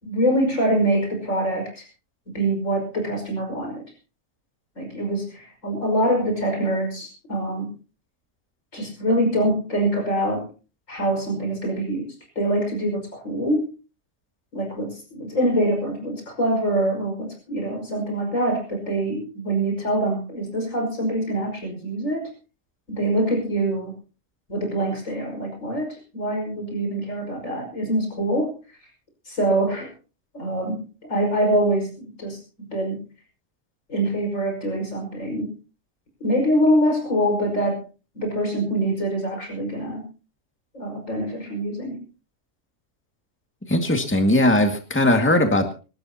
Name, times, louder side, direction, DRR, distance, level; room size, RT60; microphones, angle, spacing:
voice 1, 0.0-1.8 2.3-3.8 4.8-7.7 8.7-10.5 10.9-13.7 14.5-22.3 22.9-23.9 24.5-28.5 29.3-29.9 30.3-32.4 32.7-33.0 33.9-35.5 36.2-37.8 38.1-40.1 40.7-42.0, right 1 dB, 85° left, 2 dB, 6.0 m, -24 dB
voice 2, 43.7-45.7, left 1 dB, 10° left, 5 dB, 2.0 m, -19 dB
26.0 x 13.0 x 2.9 m, 0.34 s
omnidirectional pair, 1.3 m